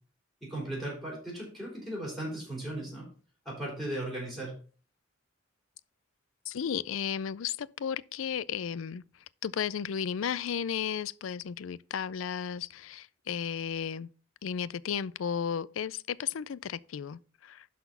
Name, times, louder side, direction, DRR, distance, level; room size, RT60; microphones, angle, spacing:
voice 1, 0.4-3.1 3.4-4.5, right 1 dB, ahead, 4.3 m, -37 dB
voice 2, 6.5-9.0 9.4-14.1 14.4-17.7, left 7 dB, 85° left, 0.4 m, -34 dB
11.5 x 4.3 x 5.4 m
head